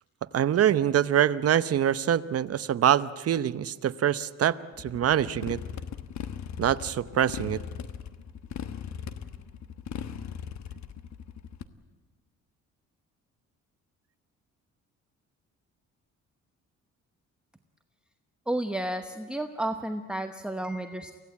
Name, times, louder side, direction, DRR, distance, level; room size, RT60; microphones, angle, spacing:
voice 1, 0.3-5.6 6.6-7.6, right 10 dB, 50° right, 14 dB, 0.8 m, -25 dB
Motorcycle, 4.7-11.6, left 8 dB, 65° left, 1.2 m, -39 dB
voice 2, 18.5-21.1, right 1 dB, 5° right, 6 dB, 1.0 m, -32 dB
24.5 x 16.5 x 8.4 m, 1.4 s
cardioid pair, 90°, 30 cm